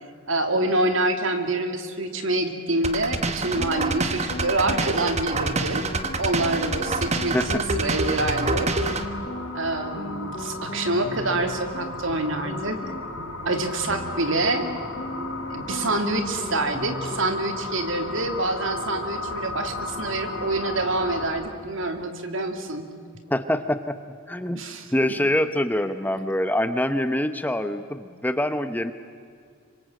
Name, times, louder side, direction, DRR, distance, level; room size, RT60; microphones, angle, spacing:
voice 1, 0.3-5.8 6.2-8.8 9.5-12.8 13.5-14.7 15.5-22.9 24.5-25.2, right 2 dB, 65° right, 6 dB, 2.6 m, -26 dB
sound 1, 2.8-9.1, right 3 dB, 30° right, 1.3 m, -27 dB
sound 2, 3.6-17.5, left 1 dB, 40° left, 1.6 m, -37 dB
sound 3, 7.8-21.3, left 2 dB, 75° left, 6.2 m, -35 dB
voice 2, 23.3-23.9 24.3-24.6 24.9-28.9, left 1 dB, 10° left, 10 dB, 0.8 m, -24 dB
26.5 x 25.0 x 7.7 m, 2.2 s
head